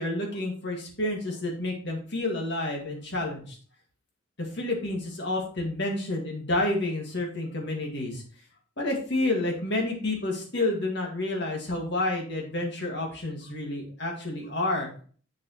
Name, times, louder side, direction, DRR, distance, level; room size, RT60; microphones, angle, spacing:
voice 1, 0.0-3.6 4.4-8.2 8.8-14.9, left 2 dB, 55° left, 1 dB, 1.9 m, -29 dB
7.2 x 6.7 x 3.0 m, 0.43 s
head